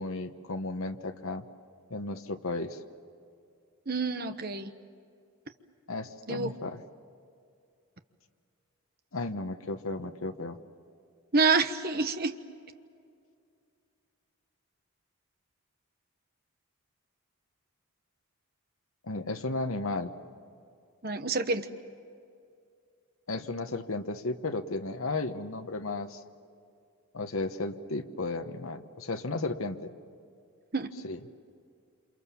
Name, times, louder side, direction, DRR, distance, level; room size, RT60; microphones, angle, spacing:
voice 1, 0.0-1.4 1.9-2.8 5.9-6.8 9.1-10.6 19.0-20.1 23.3-26.2 27.1-29.9 31.0-31.2, left 2 dB, 70° left, 7 dB, 1.2 m, -34 dB
voice 2, 3.9-4.7 6.3-6.5 11.3-12.4 21.0-21.7 30.7-30.9, right 4 dB, 45° right, 9 dB, 1.1 m, -27 dB
28.5 x 27.0 x 7.2 m, 2.4 s
head